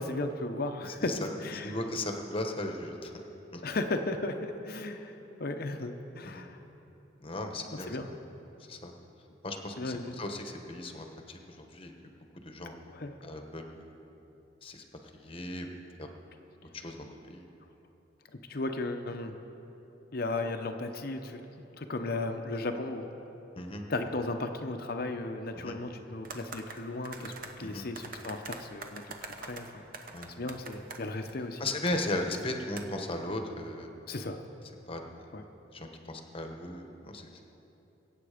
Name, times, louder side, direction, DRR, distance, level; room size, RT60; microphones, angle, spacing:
voice 1, 0.0-1.8 3.6-5.1 5.4-6.6 7.9-8.1 9.8-10.2 12.9-13.2 18.5-19.3 20.1-21.4 21.8-23.1 23.9-30.1 30.4-31.6 34.1-34.4 35.3-35.4, left 2 dB, 55° left, 5 dB, 0.8 m, -35 dB
voice 2, 0.8-1.3 1.6-3.1 3.5-3.6 6.2-6.4 7.2-8.2 8.7-8.9 9.4-11.9 12.3-12.7 13.2-13.9 14.6-14.8 15.1-15.7 16.0-16.1 16.7-17.4 23.5-23.8 25.5-25.7 27.6-27.9 30.1-30.3 31.6-33.9 34.9-35.0 35.7-37.3, left 2 dB, 30° left, 4 dB, 1.1 m, -37 dB
sound 1, 26.2-27.5 28.0-31.3 31.9-32.0 32.3-32.4 32.8-32.9, right 4 dB, 50° right, 1.0 m, -44 dB
22.5 x 8.4 x 5.0 m, 3.0 s
head